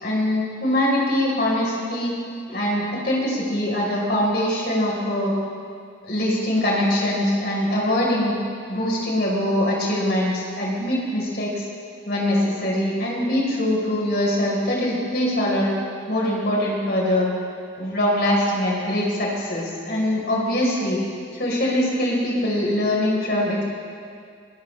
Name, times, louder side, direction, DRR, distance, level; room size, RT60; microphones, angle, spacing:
voice 1, 0.0-2.1 2.5-5.3 6.1-8.4 8.7-11.6 12.1-15.7 16.1-17.3 17.8-21.0 21.3-23.6, left 1 dB, 55° left, -3 dB, 4.1 m, -23 dB
21.0 x 18.5 x 3.3 m, 2.3 s
head